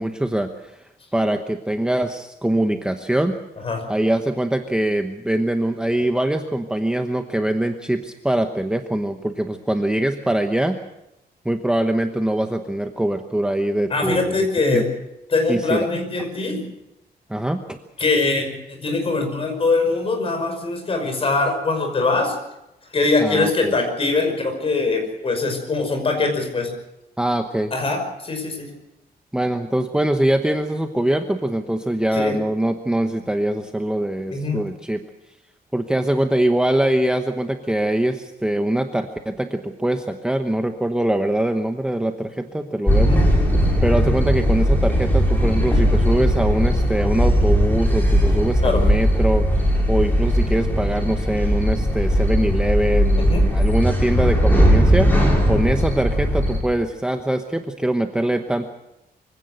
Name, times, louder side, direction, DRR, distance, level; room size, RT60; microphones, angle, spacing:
voice 1, 0.0-3.3 3.9-10.8 11.4-14.8 15.5-15.9 17.3-17.8 23.2-23.8 27.2-27.7 29.3-35.0 35.7-43.2 43.8-58.7, right 1 dB, 5° right, 5 dB, 1.0 m, -23 dB
voice 2, 13.9-14.9 15.3-16.6 18.0-22.4 22.9-26.7 27.7-28.7 32.1-32.3 34.3-34.6 42.9-43.2 48.6-48.8 53.2-53.4, left 3 dB, 35° left, 4 dB, 5.5 m, -22 dB
sound 1, 42.9-56.6, equal, 10° left, 6.1 m, -18 dB
24.0 x 16.5 x 7.9 m, 0.90 s
wide cardioid pair, 170°, 17 cm